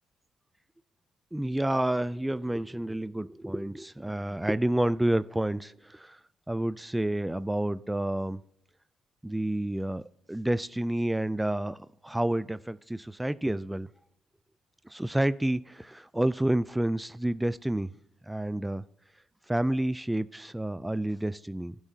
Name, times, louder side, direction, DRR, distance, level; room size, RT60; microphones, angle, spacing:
voice 1, 1.3-6.2 6.5-8.4 9.2-10.0 10.3-11.8 12.0-13.9 14.9-17.9 18.2-18.8 19.5-21.7, right 1 dB, 10° right, 0.3 m, -29 dB
12.0 x 9.1 x 2.8 m
cardioid pair, 90°, 0 cm